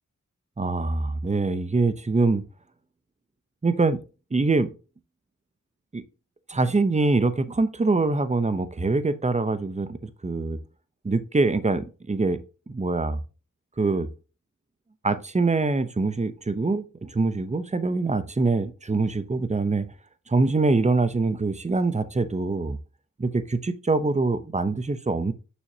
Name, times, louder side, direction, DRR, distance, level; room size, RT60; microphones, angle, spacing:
voice 1, 0.6-2.4 3.6-4.0 4.3-4.7 5.9-6.0 6.5-10.6 11.0-12.4 12.7-13.2 13.8-14.1 15.0-19.8 20.3-22.8 23.2-25.3, right 3 dB, 20° right, 0.7 m, -24 dB
6.3 x 6.2 x 2.8 m
wide cardioid pair, 60°, 31 cm